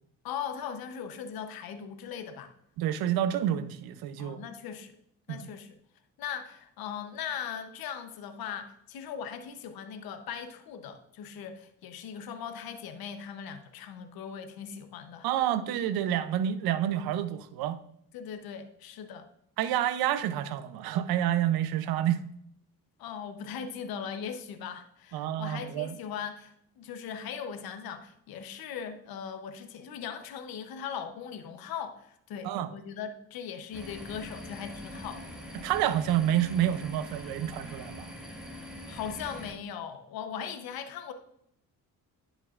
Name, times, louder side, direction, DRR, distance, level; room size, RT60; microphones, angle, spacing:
voice 1, 0.2-2.5 4.2-4.9 5.3-5.7 6.2-15.3 18.1-19.3 23.0-35.3 38.9-41.1, left 7 dB, 85° left, 9 dB, 0.8 m, -39 dB
voice 2, 2.8-4.4 5.3-5.5 15.2-17.8 19.6-22.2 25.1-26.0 32.4-32.7 35.5-38.1, right 11 dB, 90° right, 12 dB, 0.6 m, -28 dB
sound 1, 33.7-39.5, equal, ahead, 2.8 m, -43 dB
10.5 x 5.5 x 2.4 m, 0.70 s
supercardioid pair, 65°, 35 cm